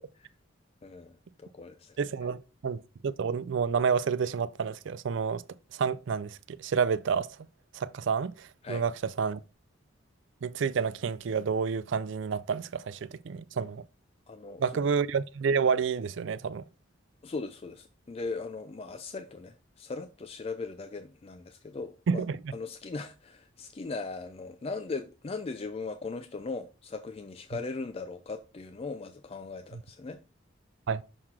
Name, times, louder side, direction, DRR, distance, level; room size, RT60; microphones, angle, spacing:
voice 1, 0.8-2.0 8.6-8.8 14.3-14.6 17.2-22.2 22.5-30.2, left 3 dB, 30° left, 0.3 m, -39 dB
voice 2, 2.0-5.4 5.7-7.3 7.7-9.4 10.4-13.8 14.6-16.6 22.1-22.4 30.9-31.0, right 6 dB, 65° right, 0.4 m, -29 dB
6.3 x 3.9 x 4.3 m
head